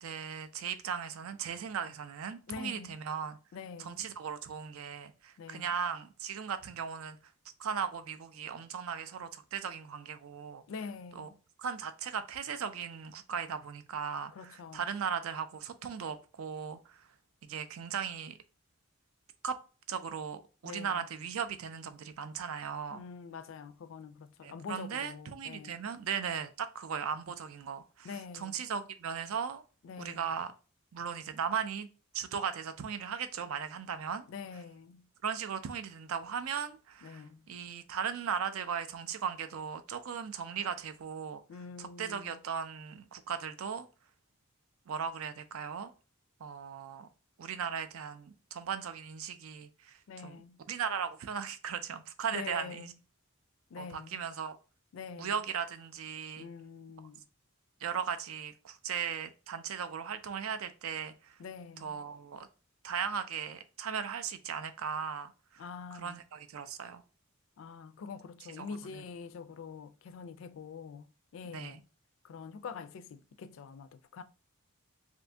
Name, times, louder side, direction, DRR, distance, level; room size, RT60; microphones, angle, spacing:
voice 1, 0.0-3.4 3.8-7.2 7.6-10.6 11.1-11.3 11.6-17.0 17.4-18.4 19.4-19.6 19.9-23.0 24.4-29.6 30.0-30.5 30.9-31.9 32.1-34.2 35.2-41.4 41.8-43.9 44.9-45.9 46.4-47.1 47.4-50.4 50.7-52.9 53.8-54.6 55.2-56.5 57.8-61.4 61.8-62.5 62.8-65.6 65.9-67.0 68.6-68.7 68.9-69.0 71.5-71.8, right 7 dB, 75° right, 0.4 m, -37 dB
voice 2, 2.5-3.0 3.5-4.1 5.4-5.7 10.7-11.4 14.3-14.8 20.6-21.0 22.9-25.8 28.0-28.7 29.8-30.3 34.3-35.1 37.0-37.4 41.5-42.4 50.1-50.6 52.3-52.9 53.7-54.2 54.9-55.3 56.4-57.2 61.4-62.0 65.6-66.2 67.6-71.8 72.2-74.2, left 5 dB, 60° left, 0.3 m, -45 dB
2.7 x 2.6 x 3.3 m
head